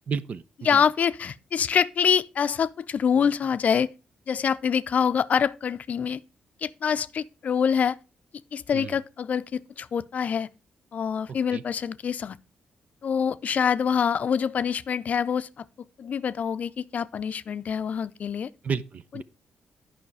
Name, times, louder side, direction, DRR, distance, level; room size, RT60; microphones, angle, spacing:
voice 1, 0.1-0.4 0.7-0.8 8.7-9.0 11.3-11.6 18.6-19.2, right 6 dB, 50° right, 0.6 m, -32 dB
voice 2, 0.6-3.9 4.3-6.2 6.6-8.0 8.5-10.5 10.9-12.4 13.0-15.5 16.0-18.5, left 7 dB, 55° left, 0.5 m, -25 dB
9.8 x 5.7 x 4.7 m
cardioid pair, 95°, 3 cm